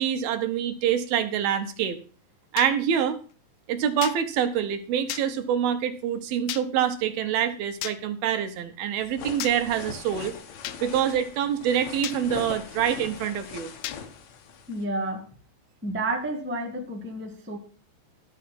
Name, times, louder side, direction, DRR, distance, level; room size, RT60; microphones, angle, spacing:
voice 1, 0.0-2.0 2.5-3.2 3.7-10.3 10.8-13.7, right 9 dB, 90° right, 9 dB, 3.0 m, -26 dB
sound 1, 2.6-2.7 4.0-4.2 5.1-5.3 6.5-6.7 7.8-8.0 9.4-9.6 10.6-10.8 12.0-12.2 13.8-14.0, left 14 dB, 80° left, 2.0 m, -33 dB
sound 2, 9.0-14.9, left 7 dB, 60° left, 2.1 m, -41 dB
voice 2, 14.7-15.2 15.8-17.6, right 2 dB, 10° right, 1 dB, 0.6 m, -30 dB
12.5 x 5.7 x 5.9 m, 0.40 s
omnidirectional pair, 4.2 m